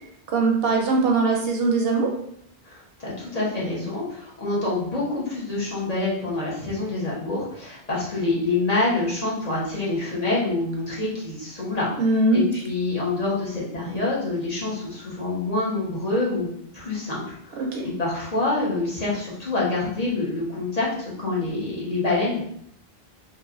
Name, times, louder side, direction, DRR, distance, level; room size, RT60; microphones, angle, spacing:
voice 1, 0.3-2.2 12.0-12.4 17.6-17.9, right 3 dB, 75° right, 1 dB, 0.8 m, -21 dB
voice 2, 2.6-11.9 12.3-22.4, left 2 dB, 45° left, -6 dB, 0.9 m, -26 dB
3.1 x 2.3 x 2.3 m, 0.69 s
omnidirectional pair, 1.0 m